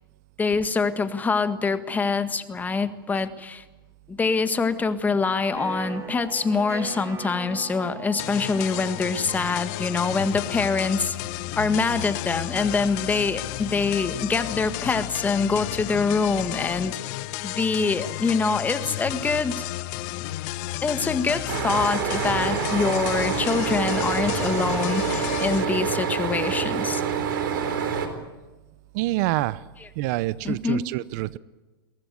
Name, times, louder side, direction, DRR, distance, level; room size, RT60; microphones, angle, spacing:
voice 1, 0.4-3.6 4.1-11.2 11.6-16.9 17.4-19.6 20.8-27.0 30.4-30.8, left 4 dB, 15° left, 11 dB, 1.6 m, -25 dB
sound 1, 5.5-11.2, right 6 dB, 25° right, 2.9 m, -41 dB
sound 2, 8.2-25.7, left 18 dB, 50° left, 0.9 m, -32 dB
sound 3, 21.5-28.1, right 7 dB, 70° right, 4.1 m, -27 dB
voice 2, 28.9-29.6 30.0-31.4, right 18 dB, 50° right, 19 dB, 0.7 m, -26 dB
22.5 x 18.5 x 9.5 m, 1.2 s
hypercardioid pair, 120°, 12 cm